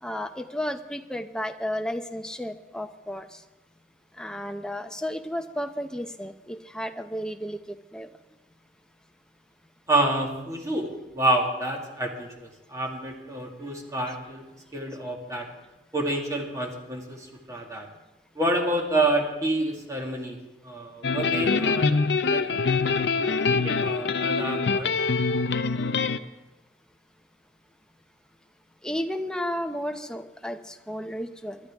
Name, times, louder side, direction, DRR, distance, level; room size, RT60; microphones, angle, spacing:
voice 1, 0.0-3.4 4.2-8.1 28.8-31.6, equal, 5° left, 6 dB, 0.7 m, -33 dB
voice 2, 9.9-15.5 15.9-17.9 18.4-20.4 20.6-22.7 23.2-24.9, right 1 dB, 20° right, 0 dB, 1.8 m, -28 dB
sound 1, 21.0-26.2, left 4 dB, 70° left, 0.6 m, -24 dB
21.5 x 12.0 x 3.6 m, 1.0 s
head